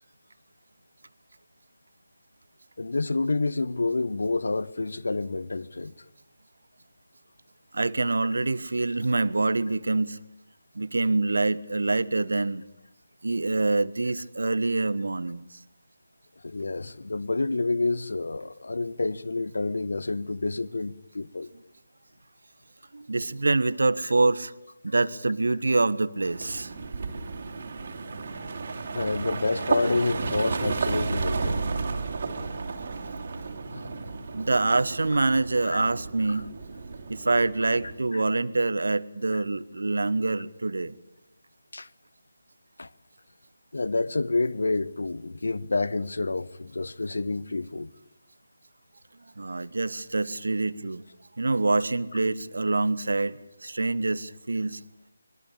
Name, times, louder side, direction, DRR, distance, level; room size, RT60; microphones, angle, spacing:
voice 1, 2.8-5.9 16.4-21.5 28.9-31.6 33.7-33.8 35.6-35.8 41.7-41.9 42.8-42.9 43.7-47.9, left 3 dB, 60° left, 1.1 m, -28 dB
voice 2, 7.7-10.2 10.7-12.6 13.2-15.4 22.9-24.5 24.8-26.7 34.3-36.5 37.1-40.9 49.4-51.0 51.4-54.8, right 3 dB, 60° right, 1.3 m, -25 dB
sound 1, 26.2-38.0, right 4 dB, 40° right, 3.5 m, -32 dB
24.0 x 23.0 x 8.5 m
figure-of-eight pair, 155°, 0 cm